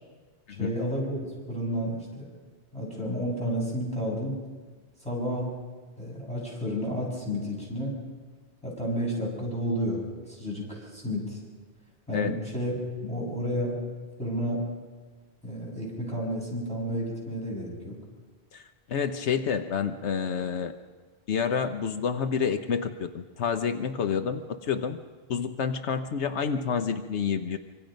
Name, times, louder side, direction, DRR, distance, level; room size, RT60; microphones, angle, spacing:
voice 1, 0.6-1.2 1.5-2.3 2.7-4.4 5.0-5.5 6.0-8.0 8.6-11.4 12.1-12.7 13.0-13.8 14.2-14.6 15.4-18.0, equal, 5° left, -4 dB, 7.3 m, -31 dB
voice 2, 18.5-20.7 21.3-25.0 25.3-27.6, left 6 dB, 80° left, 8 dB, 1.2 m, -29 dB
25.5 x 25.0 x 5.3 m, 1.4 s
omnidirectional pair, 1.1 m